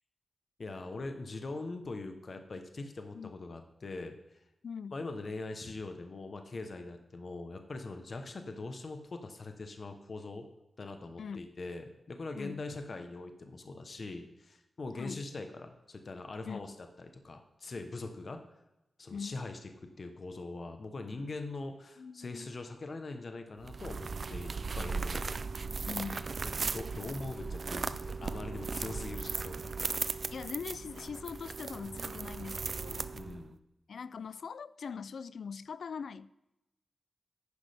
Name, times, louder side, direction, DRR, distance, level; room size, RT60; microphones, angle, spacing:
voice 1, 0.6-4.2 4.9-10.5 10.8-16.7 17.0-18.4 19.0-25.3 26.4-29.7 33.1-33.5, left 3 dB, 40° left, 0.9 m, -42 dB
voice 2, 4.6-5.0 11.2-11.5 12.4-12.6 15.0-15.3 16.5-16.8 19.1-19.4 22.0-22.5 25.3-25.5 25.9-26.3 30.3-33.1 33.9-36.3, left 6 dB, 70° left, 0.3 m, -42 dB
sound 1, 23.6-33.5, right 4 dB, 45° right, 0.4 m, -37 dB
10.5 x 9.8 x 3.4 m
wide cardioid pair, 180°, 0 cm